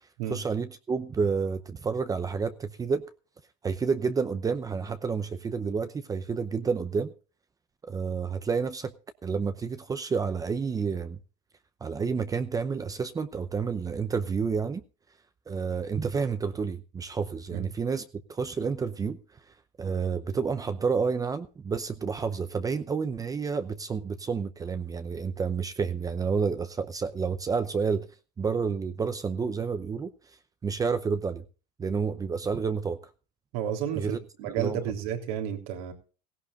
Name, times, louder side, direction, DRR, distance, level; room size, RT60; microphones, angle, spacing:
voice 1, 0.0-3.0 3.6-7.1 7.8-8.9 9.2-11.2 11.8-14.8 15.5-18.0 18.3-28.1 28.4-31.4 31.8-33.0 33.9-34.2 34.6-34.8, right 5 dB, 20° right, 0.7 m, -30 dB
voice 2, 33.5-35.9, right 9 dB, 75° right, 3.5 m, -32 dB
16.5 x 16.0 x 2.5 m
supercardioid pair, 125°, 19 cm